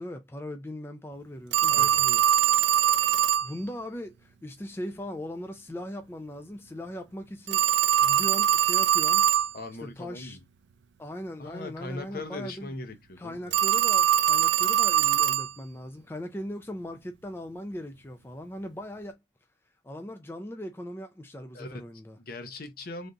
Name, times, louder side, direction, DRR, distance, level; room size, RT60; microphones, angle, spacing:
voice 1, 0.0-2.2 3.4-9.3 9.8-10.4 11.0-12.7 13.2-19.2 19.8-22.2, equal, 15° left, 0.4 m, -39 dB
Telephone, 1.5-3.5 7.5-9.5 13.5-15.5, right 11 dB, 80° right, 0.4 m, -22 dB
voice 2, 1.7-2.0 9.5-10.4 11.4-13.5 21.5-21.8 22.3-23.1, left 2 dB, 55° left, 0.7 m, -40 dB
3.4 x 2.6 x 3.7 m
head